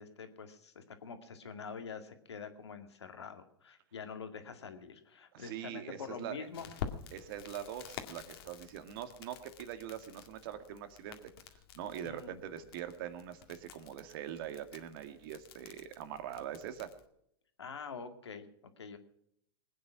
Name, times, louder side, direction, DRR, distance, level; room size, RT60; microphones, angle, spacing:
voice 1, 0.0-6.7 12.0-12.3 17.6-19.0, left 5 dB, 85° left, 6 dB, 2.2 m, -46 dB
voice 2, 5.3-6.4 7.1-11.3 11.7-16.9, right 10 dB, 60° right, 9 dB, 2.0 m, -43 dB
Crackle, 6.5-17.1, left 8 dB, 65° left, 2.0 m, -49 dB
21.5 x 9.4 x 6.0 m, 0.72 s
hypercardioid pair, 110°, 14 cm